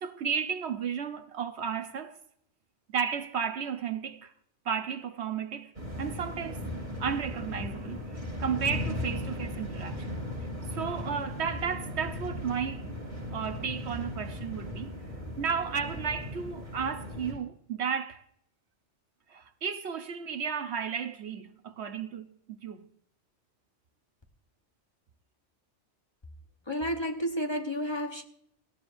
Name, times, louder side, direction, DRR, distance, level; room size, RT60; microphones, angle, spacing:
voice 1, 0.0-2.2 2.9-4.3 4.6-5.7 6.0-6.7 7.0-10.2 10.7-12.9 13.3-14.9 15.4-18.2 19.3-22.9, right 7 dB, 65° right, 1.1 m, -33 dB
sound 1, 5.7-17.3, left 1 dB, 40° right, 7.5 m, -37 dB
voice 2, 26.7-28.2, equal, 25° left, 1.0 m, -31 dB
19.0 x 16.0 x 2.6 m
omnidirectional pair, 1.2 m